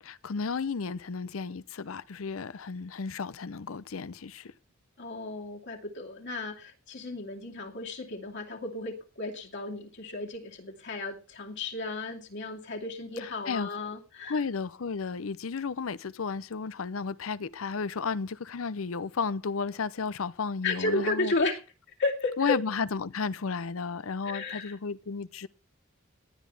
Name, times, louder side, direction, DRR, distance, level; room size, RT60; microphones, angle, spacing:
voice 1, 0.0-4.5 13.5-13.7 14.3-21.3 22.4-25.5, left 5 dB, 75° left, 0.6 m, -33 dB
voice 2, 5.0-14.4 20.6-21.6 22.0-22.6 24.2-24.7, left 2 dB, 60° left, 2.5 m, -33 dB
18.5 x 11.5 x 3.4 m
head